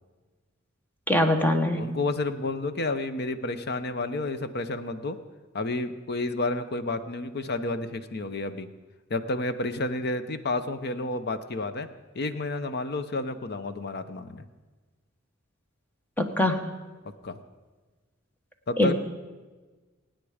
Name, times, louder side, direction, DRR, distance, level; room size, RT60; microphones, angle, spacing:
voice 1, 1.1-1.9 16.2-16.7 18.8-18.9, left 1 dB, 10° left, 5 dB, 1.2 m, -23 dB
voice 2, 1.7-5.2 5.5-8.7 9.1-11.9 12.1-14.4 17.2-17.4 18.7-18.9, left 2 dB, 50° left, 11 dB, 0.8 m, -30 dB
24.0 x 9.3 x 5.0 m, 1.3 s
head